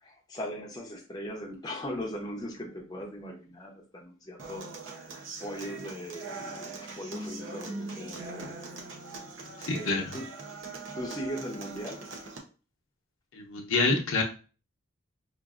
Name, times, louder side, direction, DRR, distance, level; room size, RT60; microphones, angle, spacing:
voice 1, 0.0-4.6 5.4-8.5 9.6-10.3 10.9-12.1, equal, 20° left, -1 dB, 0.6 m, -39 dB
Human voice / Acoustic guitar, 4.4-12.4, right 3 dB, 65° right, 0.7 m, -41 dB
voice 2, 9.7-10.1 13.3-14.2, left 3 dB, 75° left, 1 dB, 0.7 m, -27 dB
4.9 x 2.5 x 2.4 m, 0.36 s
head